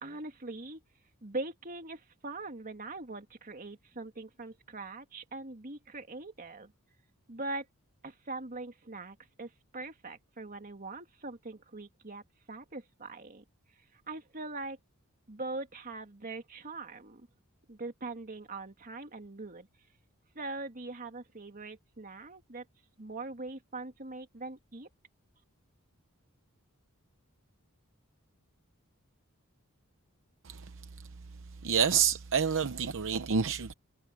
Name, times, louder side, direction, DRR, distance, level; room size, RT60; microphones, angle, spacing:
voice 1, 0.0-0.8 1.2-6.7 7.3-7.7 8.0-12.2 12.5-13.4 14.1-14.8 15.3-17.3 17.7-19.7 20.4-22.6 23.0-24.9, right 2 dB, 40° right, 2.3 m, -42 dB
voice 2, 31.6-33.7, right 7 dB, 60° right, 0.7 m, -28 dB
head